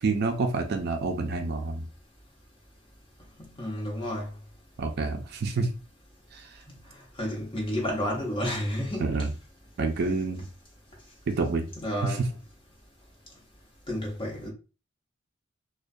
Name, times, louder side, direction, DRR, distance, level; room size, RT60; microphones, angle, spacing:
voice 1, 0.0-1.9 4.8-5.7 6.3-6.6 9.0-9.3 9.8-10.5 11.3-11.7 12.0-12.3, right 3 dB, 50° right, 0.4 m, -28 dB
voice 2, 3.6-4.3 7.2-9.1 11.8-12.2 13.9-14.5, equal, 25° left, 0.9 m, -30 dB
2.3 x 2.2 x 2.5 m
head